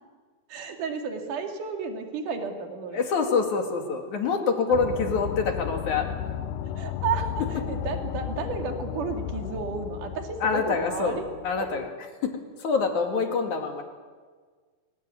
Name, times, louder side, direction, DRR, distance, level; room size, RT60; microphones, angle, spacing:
voice 1, 0.5-3.0 6.8-11.3, right 5 dB, 70° right, 4 dB, 3.8 m, -32 dB
voice 2, 2.9-6.1 10.4-11.9 12.2-13.8, left 5 dB, 65° left, 4 dB, 3.6 m, -26 dB
sound 1, 4.7-11.9, left 10 dB, 80° left, 2.4 m, -34 dB
23.0 x 19.5 x 9.8 m, 1.5 s
omnidirectional pair, 3.8 m